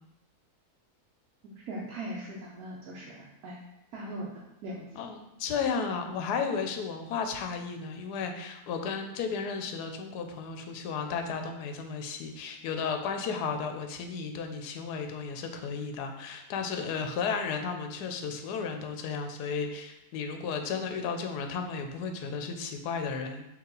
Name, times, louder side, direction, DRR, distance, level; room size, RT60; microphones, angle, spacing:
voice 1, 1.4-3.6 3.9-4.8, right 1 dB, 70° right, -4 dB, 1.1 m, -40 dB
voice 2, 5.0-23.4, left 5 dB, 80° left, 5 dB, 1.1 m, -34 dB
4.6 x 3.0 x 3.8 m, 0.89 s
omnidirectional pair, 1.7 m